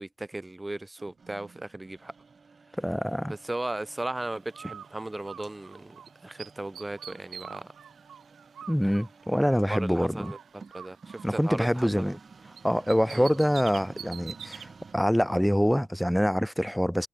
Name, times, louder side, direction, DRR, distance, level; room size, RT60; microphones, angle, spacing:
voice 1, 0.0-2.1 3.3-7.7 9.7-10.4 10.7-12.2 13.1-13.3, right 2 dB, 15° right, 4.7 m, -36 dB
sound 1, 1.0-16.0, right 5 dB, 40° right, 5.6 m, -53 dB
voice 2, 2.8-3.3 8.7-10.3 11.2-12.2 12.6-17.1, equal, ahead, 2.1 m, -25 dB
Bird, 4.5-6.1 6.4-9.8 10.2-12.3 12.6-14.7, right 8 dB, 70° right, 1.7 m, -45 dB
cardioid pair, 85°, 0 cm